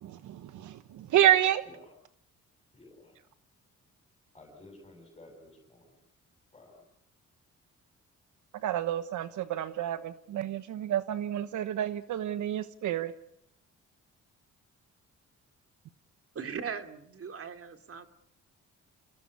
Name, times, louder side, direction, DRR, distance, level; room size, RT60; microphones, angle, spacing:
voice 1, 0.0-1.6 8.6-13.1, right 12 dB, 75° right, 12 dB, 1.1 m, -29 dB
voice 2, 2.7-3.2 4.3-5.9 6.5-6.8, left 2 dB, 20° left, 1 dB, 8.0 m, -53 dB
voice 3, 16.3-18.1, right 6 dB, 50° right, 8 dB, 2.7 m, -39 dB
28.5 x 18.0 x 8.4 m, 0.73 s
cardioid pair, 90°, 30 cm